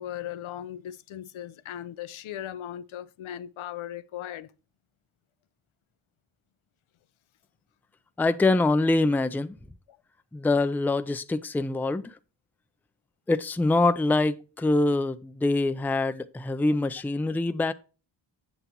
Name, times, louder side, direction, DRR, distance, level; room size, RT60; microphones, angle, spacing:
voice 1, 0.0-4.5 9.9-10.0, left 11 dB, 85° left, 0.7 m, -38 dB
voice 2, 8.2-9.6 10.3-12.2 13.3-17.7, left 2 dB, 5° left, 0.4 m, -24 dB
8.0 x 7.9 x 2.8 m
wide cardioid pair, 120°, 47 cm